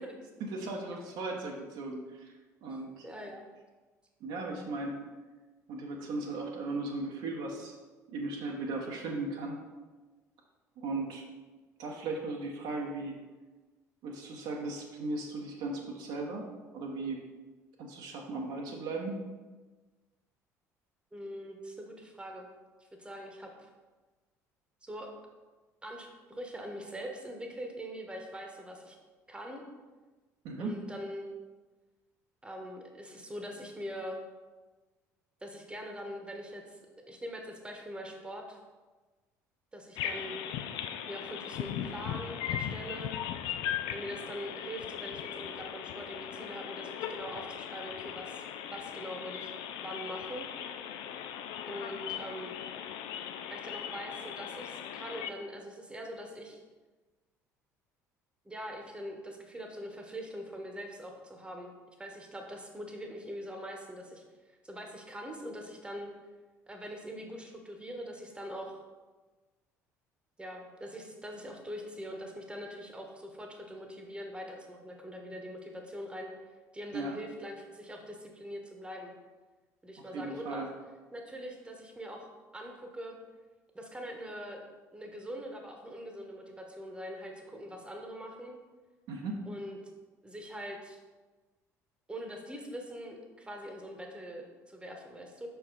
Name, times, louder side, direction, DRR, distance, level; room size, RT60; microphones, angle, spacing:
voice 1, 0.4-2.3 2.6-3.1 4.2-5.0 5.7-7.8 8.1-9.6 10.8-11.2 11.8-13.2 14.0-17.2 17.8-19.2 30.4-30.7 76.9-77.1 80.1-80.7 89.1-89.4, right 2 dB, 55° right, 0 dB, 0.9 m, -37 dB
voice 2, 3.0-3.5 21.1-22.5 22.8-23.5 24.8-25.1 25.8-29.0 29.3-29.6 30.6-31.3 32.4-34.2 35.4-38.6 39.7-40.4 41.1-43.1 43.9-48.4 48.7-49.5 49.8-50.5 51.7-52.6 53.5-56.6 58.4-61.7 62.0-66.1 66.7-68.8 70.4-76.3 76.7-79.1 79.8-80.7 81.1-83.1 83.7-84.6 84.9-88.6 89.5-89.8 90.2-91.0 92.1-95.5, equal, 10° right, 2 dB, 1.1 m, -43 dB
sound 1, 40.0-55.3, left 9 dB, 60° left, 0.4 m, -38 dB
5.9 x 4.5 x 3.9 m, 1.3 s
figure-of-eight pair, 55°, 9 cm